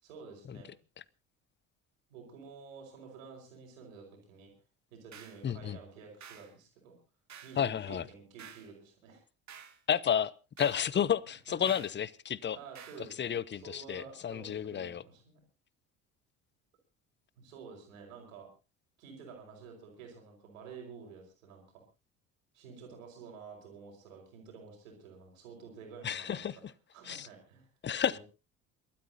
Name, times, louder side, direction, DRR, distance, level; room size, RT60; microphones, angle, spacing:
voice 1, 0.0-0.8 2.1-4.5 4.9-7.0 7.4-9.2 11.5-11.7 12.5-15.4 17.4-18.5 19.0-21.8 22.5-26.6 26.9-27.7 28.0-28.2, right 5 dB, 75° right, 1 dB, 5.5 m, -50 dB
sound 1, 5.1-5.4 6.2-6.5 7.3-7.6 8.4-8.7 9.5-9.8 10.6-10.9 11.7-12.0 12.8-13.1, right 8 dB, 45° right, 2.5 m, -51 dB
voice 2, 5.4-5.8 7.6-8.0 9.9-10.3 10.6-12.6 13.2-15.0 26.0-26.6 27.1-27.3 27.8-28.2, left 8 dB, 30° left, 21 dB, 0.8 m, -31 dB
28.0 x 13.0 x 2.8 m, 0.32 s
hypercardioid pair, 60°, 40 cm